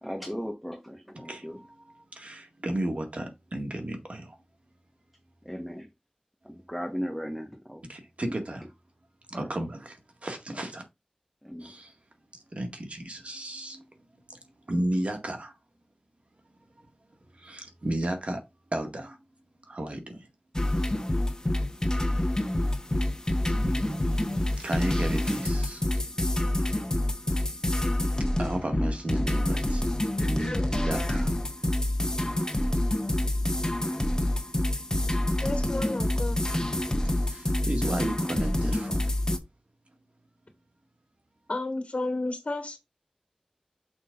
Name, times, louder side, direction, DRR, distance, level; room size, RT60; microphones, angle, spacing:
voice 1, 0.0-1.6 5.4-5.9 6.4-7.8 9.3-9.5 11.4-11.7, equal, ahead, 1.4 m, -36 dB
voice 2, 2.2-4.4 7.9-8.6 9.3-10.0 10.2-10.8 11.6-11.9 12.6-13.8 14.7-15.5 17.4-18.4 18.7-19.2 19.7-20.2 23.4-25.8 28.4-29.8 30.2-31.3 37.3-39.0, right 1 dB, 65° right, 1.9 m, -33 dB
sound 1, 20.5-39.4, left 1 dB, 30° left, 1.3 m, -27 dB
voice 3, 35.4-36.4 41.5-42.8, left 2 dB, 65° left, 1.7 m, -32 dB
6.2 x 5.0 x 3.9 m
wide cardioid pair, 50°, 2 cm